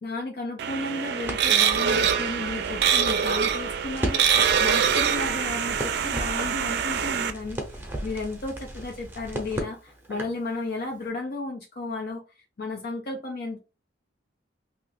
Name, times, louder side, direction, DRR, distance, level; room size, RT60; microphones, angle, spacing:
voice 1, 0.0-7.6 8.0-12.2 12.6-13.6, left 2 dB, 55° left, 0.5 m, -33 dB
sound 1, 0.6-7.3, right 7 dB, 60° right, 0.4 m, -24 dB
Crackle, 1.2-10.5, right 1 dB, 10° right, 0.7 m, -36 dB
2.8 x 2.4 x 4.1 m
head